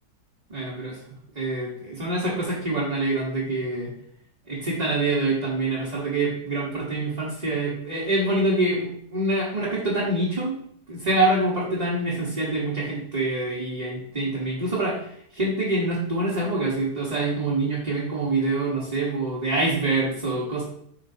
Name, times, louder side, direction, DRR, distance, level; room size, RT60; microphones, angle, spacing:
voice 1, 0.5-0.9 1.3-3.9 4.5-10.6 10.9-15.1 15.3-20.6, right 2 dB, 25° right, -6 dB, 1.2 m, -25 dB
8.2 x 5.4 x 2.8 m, 0.68 s
omnidirectional pair, 1.7 m